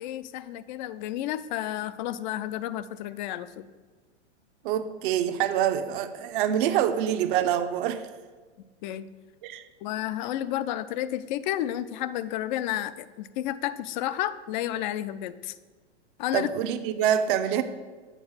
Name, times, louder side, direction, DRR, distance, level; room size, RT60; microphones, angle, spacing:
voice 1, 0.0-3.6 8.8-9.1 9.8-15.5 16.2-16.5, left 12 dB, 45° left, 14 dB, 0.4 m, -31 dB
voice 2, 4.6-8.1 9.4-9.6 16.3-17.6, right 10 dB, 50° right, 10 dB, 0.6 m, -26 dB
8.2 x 4.6 x 5.6 m, 1.4 s
hypercardioid pair, 115°, 34 cm